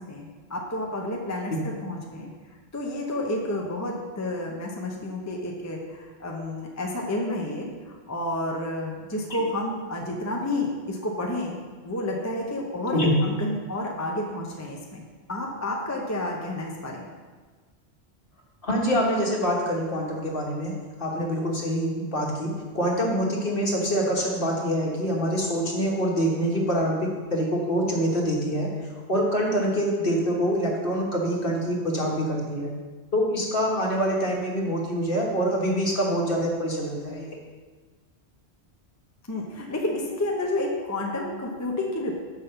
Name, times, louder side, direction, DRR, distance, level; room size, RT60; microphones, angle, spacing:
voice 1, 0.1-2.3 2.7-11.6 11.8-15.0 15.3-17.0 39.3-42.1, left 1 dB, 15° left, 0 dB, 0.7 m, -30 dB
voice 2, 18.6-20.7 21.0-28.7 29.1-32.7 33.1-37.3, equal, 55° left, -2 dB, 1.6 m, -25 dB
5.8 x 5.4 x 6.7 m, 1.4 s
omnidirectional pair, 1.1 m